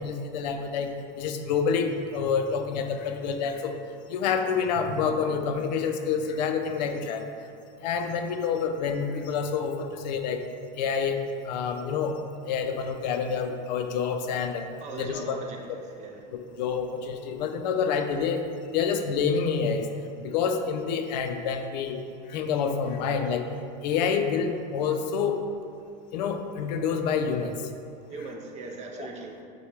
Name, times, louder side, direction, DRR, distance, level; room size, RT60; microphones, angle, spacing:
voice 1, 0.0-3.8 4.1-7.3 7.8-10.4 10.8-11.2 11.4-12.2 12.5-14.7 15.0-15.4 16.3-18.5 18.7-19.9 20.2-22.0 22.3-23.5 23.8-25.4 26.1-27.6 29.0-29.1, left 6 dB, 80° left, 6 dB, 0.5 m, -28 dB
voice 2, 14.8-16.3 28.1-29.4, right 3 dB, 35° right, 1 dB, 0.5 m, -39 dB
6.4 x 2.3 x 3.2 m, 2.4 s
supercardioid pair, 130°, 21 cm